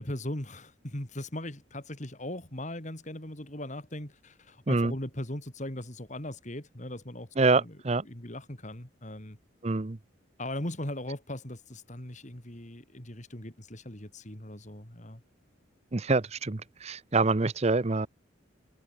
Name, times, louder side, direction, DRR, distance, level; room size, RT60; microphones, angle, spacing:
voice 1, 0.0-7.8 8.0-9.4 10.4-15.2, left 1 dB, 40° left, 3.5 m, -39 dB
voice 2, 7.4-8.0 9.6-10.0 15.9-18.1, right 3 dB, 35° right, 0.7 m, -26 dB
head